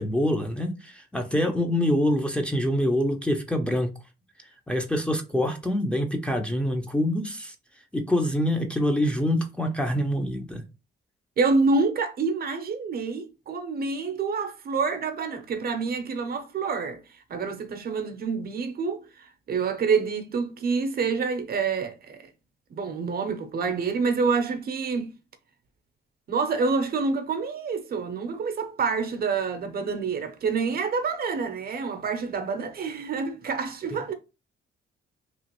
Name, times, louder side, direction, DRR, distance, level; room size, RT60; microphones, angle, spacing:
voice 1, 0.0-3.9 4.7-7.5 7.9-10.6, left 1 dB, 5° left, 0.5 m, -25 dB
voice 2, 11.4-17.0 17.3-22.2 22.7-25.1 26.3-34.1, right 4 dB, 50° right, 0.6 m, -27 dB
3.0 x 2.4 x 2.9 m
cardioid pair, 90°, 20 cm